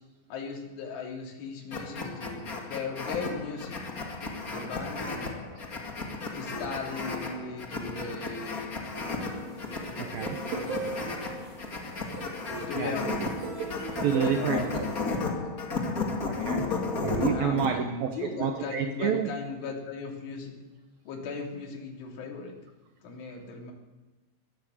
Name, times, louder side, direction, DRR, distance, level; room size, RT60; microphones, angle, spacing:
voice 1, 0.3-3.8 4.4-5.4 6.3-8.7 10.5-10.9 12.7-13.3 14.2-14.7 15.1-15.2 17.1-20.5 21.1-22.6 23.0-23.7, left 4 dB, 75° left, -1 dB, 5.7 m, -37 dB
sound 1, 1.7-17.7, left 3 dB, 45° left, 1.1 m, -34 dB
sound 2, 9.0-15.2, right 5 dB, 60° right, 5.7 m, -39 dB
voice 2, 10.0-10.4 12.7-13.0 14.0-14.9 16.3-19.3, right 8 dB, 75° right, 6 dB, 2.1 m, -29 dB
22.0 x 15.0 x 7.9 m, 1.2 s
omnidirectional pair, 5.6 m